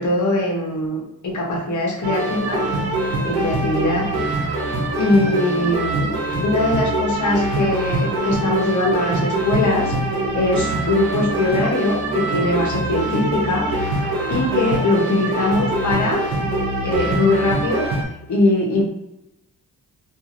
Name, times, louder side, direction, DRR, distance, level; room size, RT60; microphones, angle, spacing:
voice 1, 0.0-2.6 3.2-4.1 5.0-6.1 6.4-9.9 10.3-13.7 13.9-16.2 16.8-17.9 18.3-18.9, left 2 dB, 50° left, -1 dB, 0.9 m, -21 dB
sound 1, 2.0-18.0, right 2 dB, 90° right, 0.8 m, -23 dB
2.9 x 2.5 x 2.5 m, 0.87 s
cardioid pair, 115°, 37 cm